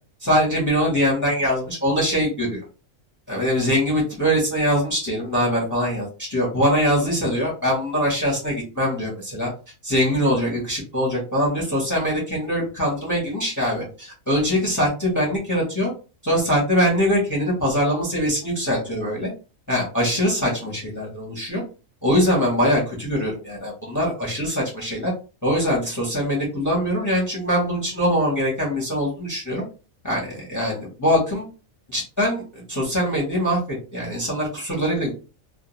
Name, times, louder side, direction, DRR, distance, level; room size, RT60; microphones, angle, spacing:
voice 1, 0.2-2.6 3.3-9.5 9.8-15.9 16.2-19.3 19.7-21.6 22.0-25.1 25.4-29.6 30.0-31.5 31.9-35.1, equal, 20° left, -3 dB, 0.6 m, -22 dB
2.2 x 2.2 x 2.9 m, 0.33 s
omnidirectional pair, 1.4 m